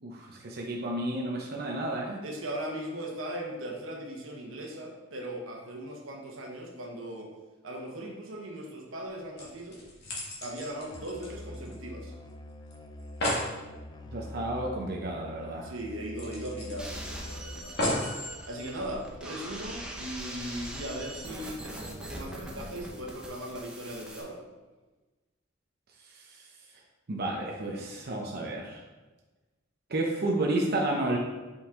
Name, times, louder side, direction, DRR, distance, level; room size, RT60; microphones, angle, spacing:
voice 1, 0.0-2.2 13.4-13.5 14.1-15.7 26.1-26.5 27.1-28.8 29.9-31.2, right 2 dB, 50° right, -1 dB, 0.7 m, -31 dB
voice 2, 2.2-7.3 7.6-9.8 10.4-12.1 15.6-17.8 18.4-24.4, right 1 dB, 90° right, 1 dB, 1.2 m, -38 dB
sound 1, 9.4-12.0 12.3-12.4 12.7-12.8 13.0-13.5 15.0-15.1 15.5-15.6 16.2-17.2 17.8-18.2 18.9-19.0, left 1 dB, 55° left, 1.8 m, -33 dB
Musical instrument, 10.9-17.7, left 1 dB, 20° left, 0.4 m, -44 dB
sound 2, 16.8-24.2, right 1 dB, 5° right, 0.7 m, -42 dB
5.4 x 5.3 x 3.6 m, 1.2 s
head